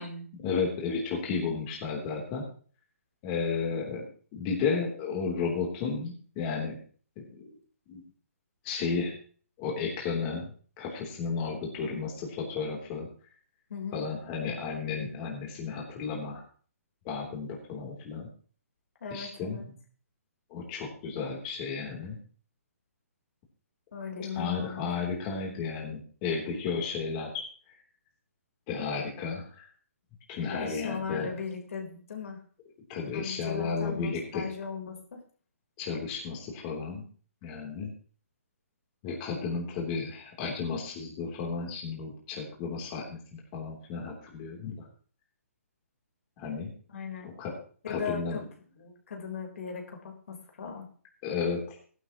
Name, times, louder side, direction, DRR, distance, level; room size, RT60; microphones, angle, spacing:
voice 1, 0.4-2.4 3.2-4.0 4.3-6.8 7.2-7.5 7.9-8.0 8.6-9.2 9.6-10.5 10.8-13.1 13.9-16.4 17.0-18.3 19.1-19.6 20.5-22.2 24.3-27.7 28.7-29.7 30.3-31.3 32.9-34.5 35.8-37.0 37.4-37.9 39.0-44.9 46.4-46.7 47.4-47.5 47.9-48.4 51.2-51.8, left 5 dB, 30° left, -1 dB, 3.3 m, -33 dB
voice 2, 13.7-14.0 19.0-19.7 23.9-24.9 30.4-32.4 33.1-35.2 46.9-47.3 47.8-48.4 48.7-50.9, left 6 dB, 60° left, 1 dB, 3.9 m, -38 dB
16.0 x 11.5 x 3.0 m, 0.43 s
hypercardioid pair, 145°, 8 cm